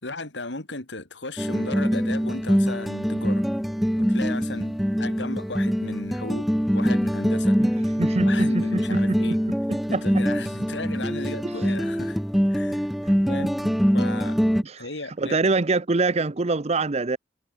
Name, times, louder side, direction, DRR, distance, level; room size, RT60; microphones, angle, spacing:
voice 1, 0.0-3.5 4.0-7.6 8.2-9.4 9.9-12.2 12.5-12.9 13.2-13.5 13.9-14.4 14.8-15.4, left 2 dB, 70° left, 3.2 m, -35 dB
sound 1, 1.4-14.6, equal, ahead, 0.3 m, -24 dB
voice 2, 8.0-9.4 9.7-10.0 13.0-13.1 14.6-14.9 15.2-17.2, right 3 dB, 35° right, 0.7 m, -25 dB
head